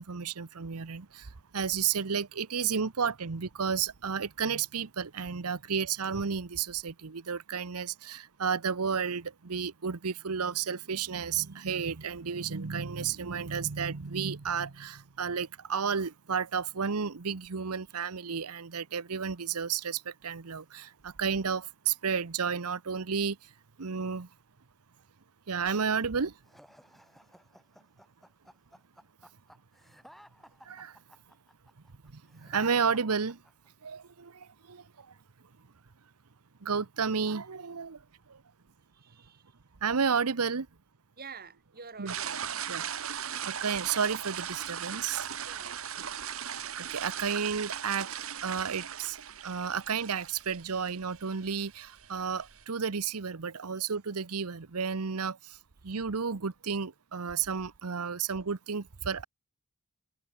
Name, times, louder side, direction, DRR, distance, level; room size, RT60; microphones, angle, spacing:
voice 1, 0.0-23.5 23.8-24.3 25.5-26.4 30.6-31.0 32.0-33.4 33.8-35.1 36.6-38.4 39.8-40.7 42.0-42.1 42.7-45.3 46.0-48.1 48.4-49.2 49.4-55.6 55.8-59.2, right 6 dB, 90° right, 0.9 m, -32 dB
sound 1, 26.4-33.9, equal, ahead, 2.8 m, -57 dB
voice 2, 38.9-39.4 41.2-42.5 45.5-46.1, right 5 dB, 45° right, 3.9 m, -48 dB
sound 2, 42.1-52.6, right 9 dB, 65° right, 1.9 m, -38 dB
head